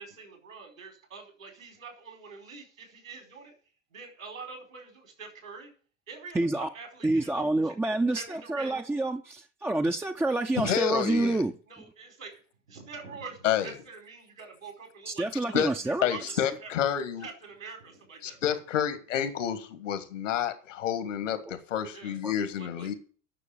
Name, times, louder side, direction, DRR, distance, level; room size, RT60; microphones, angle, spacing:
voice 1, 0.0-3.5 3.9-5.7 6.1-7.7 8.1-8.8 11.7-12.3 12.7-16.2 16.6-16.7 17.2-18.6 21.9-22.1 22.6-23.0, right 4 dB, 80° right, 4.8 m, -45 dB
voice 2, 6.3-6.7 7.0-11.5 15.1-16.1 21.5-21.6 22.2-22.3, right 2 dB, 5° right, 0.6 m, -28 dB
voice 3, 10.6-11.4 13.4-13.7 15.5-15.7 16.0-17.3 18.2-22.9, left 9 dB, 70° left, 1.8 m, -29 dB
10.0 x 6.9 x 8.9 m
figure-of-eight pair, 75°, 39 cm